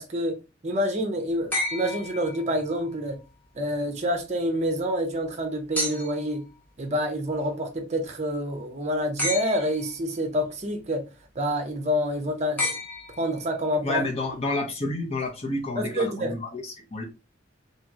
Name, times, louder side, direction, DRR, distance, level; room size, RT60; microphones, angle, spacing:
voice 1, 0.0-3.2 3.5-6.4 6.8-11.1 11.4-12.7 13.2-14.0 15.8-16.3, equal, 35° right, 0.6 m, -27 dB
sound 1, 1.5-2.9 5.8-6.4 9.2-10.0 12.6-13.6 15.2-15.3, left 1 dB, 10° left, 0.9 m, -31 dB
voice 2, 13.8-17.0, left 2 dB, 35° left, 0.8 m, -30 dB
2.9 x 2.8 x 2.4 m
head